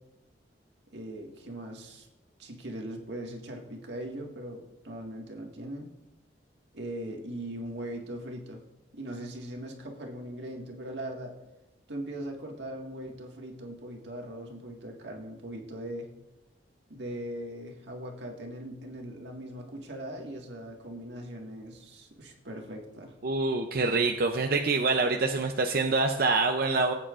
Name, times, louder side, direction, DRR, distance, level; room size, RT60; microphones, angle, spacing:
voice 1, 0.9-2.1 2.4-5.9 6.7-8.6 8.9-11.3 11.9-16.1 16.9-23.1, right 1 dB, 85° right, 1 dB, 1.8 m, -40 dB
voice 2, 23.2-26.9, right 3 dB, 60° right, 4 dB, 0.6 m, -26 dB
18.5 x 8.8 x 2.5 m, 0.98 s
head